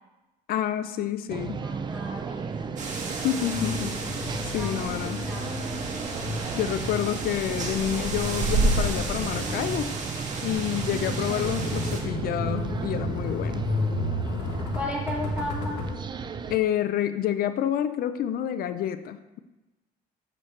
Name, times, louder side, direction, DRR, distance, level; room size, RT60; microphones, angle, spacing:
voice 1, 0.5-1.7 3.2-4.0 4.4-5.3 6.5-9.9 10.4-13.7 16.5-19.4, left 10 dB, 60° left, 11 dB, 0.4 m, -28 dB
sound 1, 1.3-16.6, right 6 dB, 25° right, 0.4 m, -35 dB
voice 2, 1.6-2.7 4.5-5.7 14.7-15.8, left 1 dB, 10° right, -4 dB, 2.3 m, -35 dB
sound 2, 2.8-12.0, right 3 dB, 45° right, 1.5 m, -31 dB
sound 3, 3.5-15.9, left 2 dB, 90° left, 1.1 m, -33 dB
7.1 x 6.6 x 3.2 m, 1.1 s
cardioid pair, 110°, 17 cm